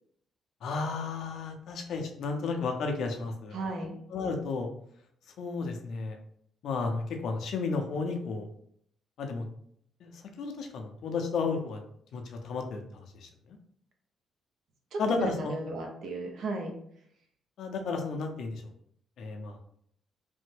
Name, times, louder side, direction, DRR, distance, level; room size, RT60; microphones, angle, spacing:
voice 1, 0.6-3.6 4.1-4.7 5.4-6.2 6.6-8.5 9.2-9.5 10.0-10.1 10.4-11.8 12.1-13.6 15.0-15.6 17.6-18.6 19.2-19.6, left 4 dB, 70° left, 3 dB, 0.5 m, -33 dB
voice 2, 3.5-4.0 14.9-16.7, right 2 dB, 70° right, 2 dB, 0.7 m, -34 dB
3.3 x 2.1 x 3.2 m, 0.68 s
cardioid pair, 90°, 0 cm